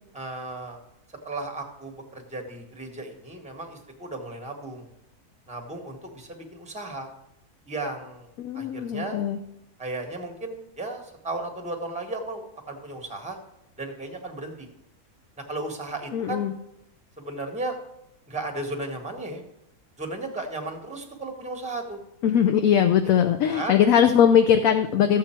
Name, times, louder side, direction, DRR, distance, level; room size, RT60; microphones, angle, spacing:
voice 1, 0.1-0.8 1.2-4.9 5.5-7.1 7.7-8.3 8.5-9.2 9.8-13.4 13.8-14.7 15.5-16.4 17.2-17.8 18.3-19.4 20.0-22.0 23.5-23.8, right 2 dB, 5° right, 4 dB, 1.2 m, -35 dB
voice 2, 8.4-9.4 16.1-16.5 22.2-25.2, left 8 dB, 70° left, 7 dB, 1.0 m, -20 dB
13.5 x 7.7 x 4.4 m, 0.84 s
omnidirectional pair, 1.6 m